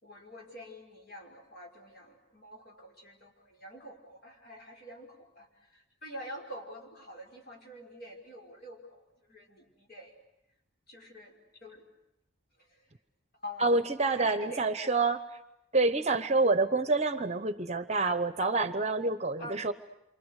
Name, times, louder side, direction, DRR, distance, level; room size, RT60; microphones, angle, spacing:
voice 1, 0.0-10.1 10.9-11.8 12.6-12.9 13.4-15.0 19.4-19.7, equal, 50° left, 0 dB, 5.6 m, -47 dB
voice 2, 13.6-15.2 15.7-19.7, right 3 dB, 35° right, 12 dB, 0.9 m, -27 dB
28.5 x 25.0 x 8.3 m, 0.86 s
head